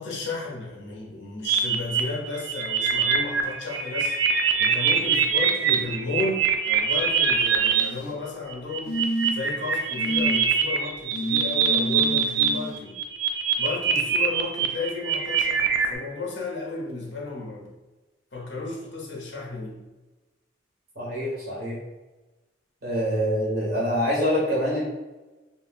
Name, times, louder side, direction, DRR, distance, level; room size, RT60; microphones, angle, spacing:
voice 1, 0.0-4.2 4.6-9.0 9.3-13.0 13.6-17.7 18.3-19.8, left 3 dB, 60° left, -2 dB, 0.7 m, -33 dB
sound 1, 1.4-7.8 8.5-12.5 12.7-16.0, right 7 dB, 70° right, 0.3 m, -23 dB
sound 2, 7.6-8.2 8.9-9.5 10.0-10.4 11.1-12.7 14.0-14.1, equal, 85° left, 0.4 m, -30 dB
voice 2, 21.0-21.8 22.8-24.8, equal, 50° right, -6 dB, 1.0 m, -25 dB
2.3 x 2.3 x 3.4 m, 1.1 s
head